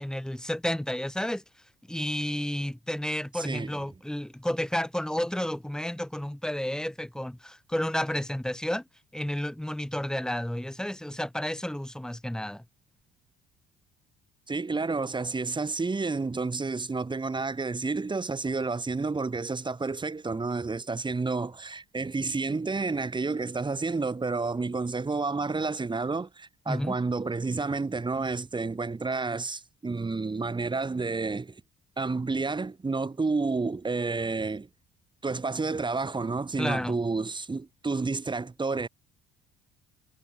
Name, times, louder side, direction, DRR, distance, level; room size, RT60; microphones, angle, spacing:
voice 1, 0.0-1.4 1.9-8.8 9.1-12.6 26.7-27.0 36.6-37.0, left 1 dB, 5° left, 4.4 m, -31 dB
voice 2, 3.3-3.7 14.5-31.6 32.0-34.7 35.2-38.9, right 3 dB, 25° right, 3.7 m, -30 dB
supercardioid pair, 75°, 20 cm